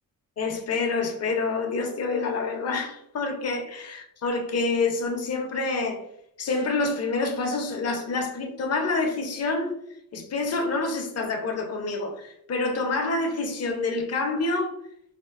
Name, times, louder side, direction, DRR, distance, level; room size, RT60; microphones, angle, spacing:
voice 1, 0.4-6.0 6.4-9.7 10.1-14.7, left 3 dB, 45° left, 0.7 m, -27 dB
4.3 x 2.4 x 2.4 m
wide cardioid pair, 150°, 36 cm